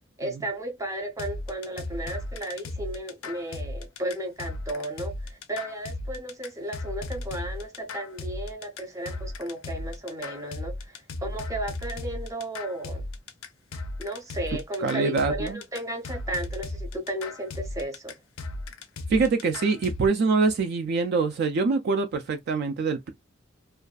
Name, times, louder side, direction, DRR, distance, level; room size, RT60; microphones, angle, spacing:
voice 1, 0.2-13.0 14.0-18.2, right 1 dB, 15° right, 0.6 m, -34 dB
sound 1, 1.2-20.1, left 2 dB, 85° left, 0.5 m, -36 dB
voice 2, 14.8-15.6 19.1-23.1, right 4 dB, 50° right, 0.3 m, -24 dB
2.4 x 2.3 x 2.3 m
head